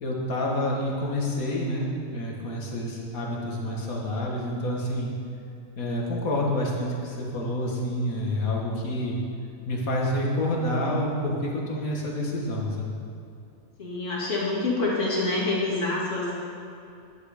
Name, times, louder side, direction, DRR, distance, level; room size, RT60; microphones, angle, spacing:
voice 1, 0.0-5.1 5.8-9.2 9.7-12.9, left 1 dB, 80° left, -2 dB, 2.1 m, -28 dB
voice 2, 13.8-16.3, left 2 dB, 60° left, -5 dB, 2.7 m, -26 dB
10.5 x 10.0 x 5.0 m, 2.5 s
omnidirectional pair, 1.5 m